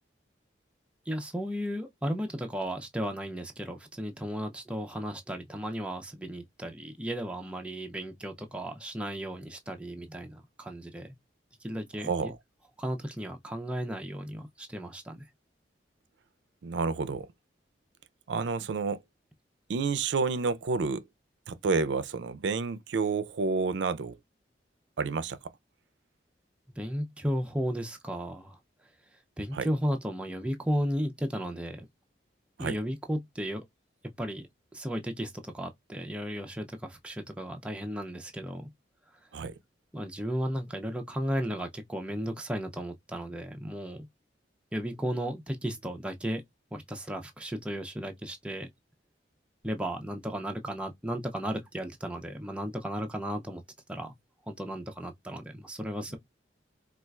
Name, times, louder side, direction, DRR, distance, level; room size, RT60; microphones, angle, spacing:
voice 1, 1.1-11.1 11.6-12.3 12.8-15.2 26.8-28.6 29.4-31.9 32.6-33.6 34.2-34.4 34.7-38.7 39.9-44.1 44.7-46.4 46.7-48.7 49.6-53.6 53.9-54.1 54.5-56.2, equal, 5° right, 0.4 m, -34 dB
voice 2, 12.0-12.4 16.6-17.3 18.3-19.0 19.7-21.0 21.5-24.2 25.0-25.4 29.5-29.7 32.6-32.8 39.3-39.5, right 4 dB, 75° right, 0.4 m, -29 dB
4.2 x 2.4 x 2.3 m
head